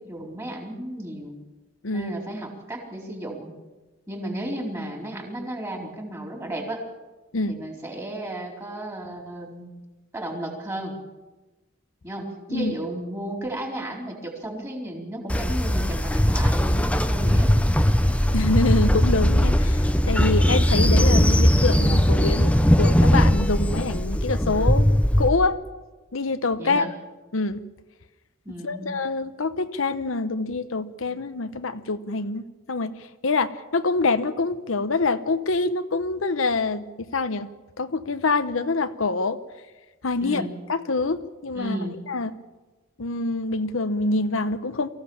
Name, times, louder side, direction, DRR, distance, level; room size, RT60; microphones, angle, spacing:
voice 1, 0.0-1.4 1.9-3.5 4.1-6.8 7.5-9.7 10.1-10.9 12.0-17.6 26.6-26.9 28.4-28.9 40.2-40.5 41.5-42.0, right 1 dB, 15° right, 1 dB, 4.0 m, -33 dB
voice 2, 1.8-2.1 7.3-7.6 12.5-12.7 18.3-24.9 25.2-25.6 26.1-26.9 27.3-27.7 28.5-37.5 37.8-39.4 40.0-41.8 42.1-42.3 43.0-44.9, left 3 dB, 85° left, 10 dB, 0.9 m, -26 dB
Train, 15.3-25.3, equal, 5° left, 0.7 m, -19 dB
23.5 x 15.5 x 7.2 m, 1.2 s
head